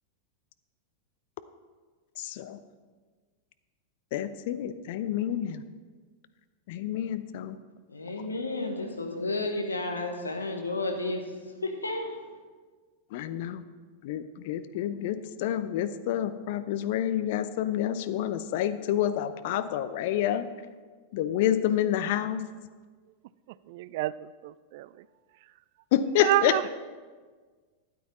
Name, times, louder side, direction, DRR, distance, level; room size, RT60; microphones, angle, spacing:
voice 1, 2.2-2.6 4.1-5.6 6.7-7.6 13.1-13.6 14.0-20.4 21.1-22.4 25.9-26.6, left 11 dB, 50° left, 12 dB, 0.6 m, -28 dB
voice 2, 7.9-11.2 11.6-12.1, left 2 dB, 80° left, 4 dB, 1.3 m, -32 dB
voice 3, 23.7-24.9 26.2-26.6, right 16 dB, 50° right, 19 dB, 0.3 m, -28 dB
12.5 x 9.3 x 4.2 m, 1.5 s
figure-of-eight pair, 90°, 0 cm